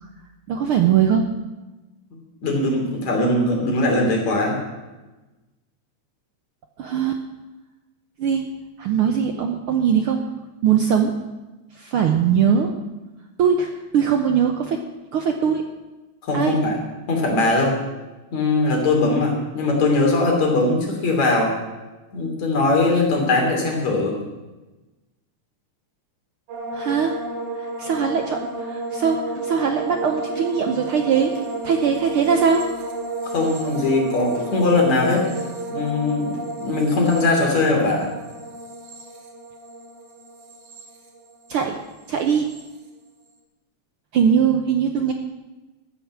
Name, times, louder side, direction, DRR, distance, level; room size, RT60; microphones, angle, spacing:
voice 1, 0.5-1.2 6.8-7.2 8.2-8.4 8.8-10.2 10.6-11.1 11.8-12.7 13.4-14.8 15.1-15.6 16.3-16.6 26.7-27.2 27.6-31.3 31.6-32.7 41.5-41.8 42.1-42.5 44.1-45.1, right 7 dB, 65° right, 4 dB, 1.4 m, -20 dB
voice 2, 2.1-4.6 16.2-16.8 17.1-17.8 18.3-21.5 22.1-24.2 33.2-35.2 35.7-38.1, left 2 dB, 65° left, 0 dB, 4.4 m, -20 dB
sound 1, 26.5-41.7 42.0-42.6, right 2 dB, 90° right, 3.6 m, -32 dB
sound 2, 29.3-29.5 30.3-30.6 31.3-31.6 32.3-32.5 33.3-33.5 34.3-34.7 35.3-35.5 36.3-36.5, right 2 dB, 25° left, 5.9 m, -38 dB
14.0 x 9.7 x 7.4 m, 1.1 s
omnidirectional pair, 3.3 m